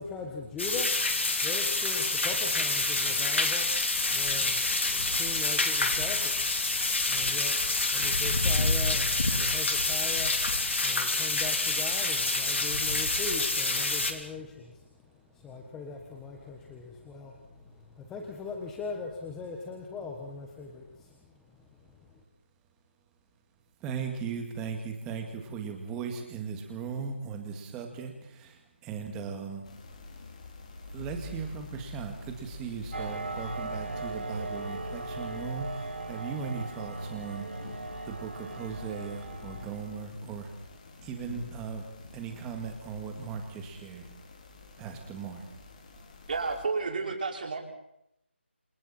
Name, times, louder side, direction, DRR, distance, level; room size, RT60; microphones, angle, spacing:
voice 1, 0.0-22.2, left 4 dB, 5° left, 1 dB, 1.3 m, -41 dB
sound 1, 0.6-14.1, left 2 dB, 80° left, 3.5 m, -27 dB
voice 2, 23.8-29.7 30.9-40.5 41.0-41.9 42.1-44.1 44.8-45.6, right 6 dB, 10° right, 4 dB, 2.1 m, -38 dB
sound 2, 29.6-46.7, left 3 dB, 35° left, 3.2 m, -47 dB
sound 3, 32.9-40.0, right 2 dB, 75° right, 5.0 m, -38 dB
voice 3, 46.3-47.6, right 4 dB, 45° right, 0 dB, 5.4 m, -31 dB
28.0 x 27.0 x 4.4 m, 0.80 s
figure-of-eight pair, 170°, 7 cm